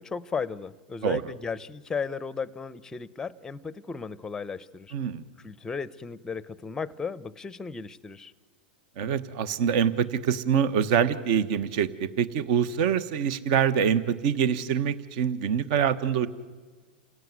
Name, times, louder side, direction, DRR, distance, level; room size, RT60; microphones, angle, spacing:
voice 1, 0.0-4.9 5.4-8.3, left 5 dB, 10° left, 19 dB, 0.7 m, -35 dB
voice 2, 4.9-5.2 9.0-16.3, right 8 dB, 55° right, 16 dB, 1.2 m, -25 dB
28.0 x 16.5 x 9.5 m, 1.4 s
supercardioid pair, 145°, 5 cm